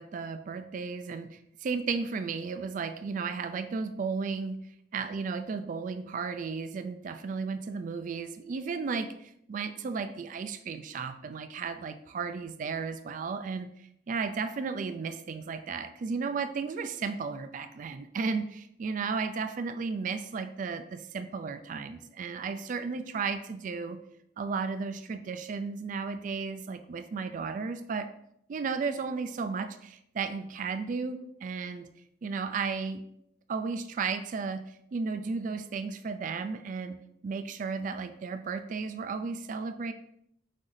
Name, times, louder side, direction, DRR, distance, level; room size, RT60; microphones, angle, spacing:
voice 1, 0.0-4.7 4.9-13.7 14.1-24.0 24.4-28.1 28.5-31.9 32.2-33.0 33.5-39.9, right 5 dB, 45° right, 10 dB, 0.3 m, -34 dB
5.7 x 2.6 x 3.2 m, 0.73 s
head